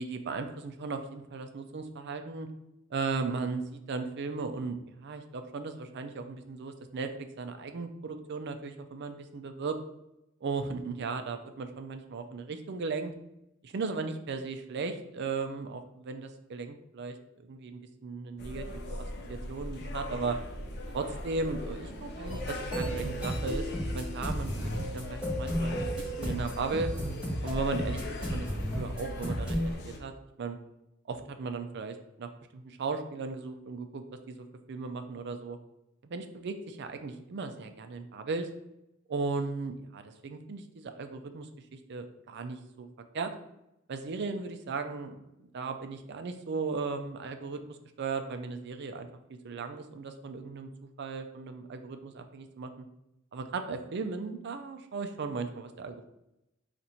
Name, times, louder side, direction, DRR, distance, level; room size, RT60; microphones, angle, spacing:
voice 1, 0.0-2.5 2.9-7.1 7.4-9.8 10.4-13.1 13.6-20.4 20.9-26.9 27.4-28.0 28.3-28.5 28.7-30.1 30.4-30.6 31.1-35.6 36.0-38.5 39.1-42.9 43.1-43.3 43.9-45.2 45.5-49.1 49.4-50.7 51.0-52.9 53.3-56.1, right 4 dB, 55° right, 7 dB, 0.4 m, -36 dB
sound 1, 18.4-30.0, left 1 dB, 55° left, 0.6 m, -40 dB
sound 2, 22.3-29.7, equal, 5° right, 1.1 m, -33 dB
4.1 x 2.5 x 4.3 m, 0.87 s
head